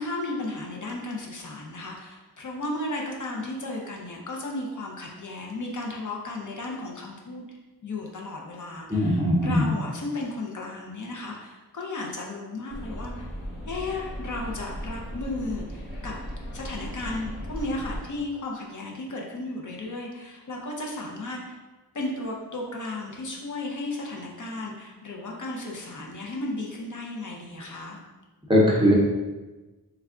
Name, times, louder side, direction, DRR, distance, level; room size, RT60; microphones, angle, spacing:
voice 1, 0.0-7.6 7.8-13.3 13.7-16.1 16.5-21.6 21.9-28.0, left 2 dB, 50° left, -1 dB, 0.6 m, -34 dB
voice 2, 8.9-9.7 28.5-28.9, equal, 15° right, -5 dB, 0.6 m, -20 dB
sound 1, 12.7-18.0, equal, 25° left, 1.4 m, -37 dB
3.4 x 2.3 x 3.6 m, 1.2 s
wide cardioid pair, 100°, 38 cm